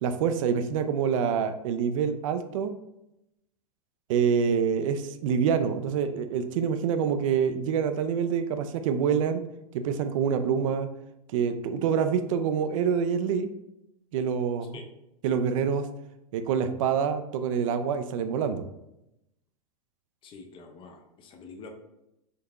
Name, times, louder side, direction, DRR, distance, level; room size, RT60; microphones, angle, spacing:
voice 1, 0.0-2.7 4.1-9.4 9.7-10.9 11.3-13.5 14.1-14.8 15.2-15.9 16.3-18.6, right 7 dB, 60° right, 9 dB, 0.4 m, -26 dB
voice 2, 20.2-21.7, left 4 dB, 25° left, 4 dB, 0.5 m, -46 dB
3.7 x 2.7 x 2.3 m, 0.86 s
hypercardioid pair, 105°, 19 cm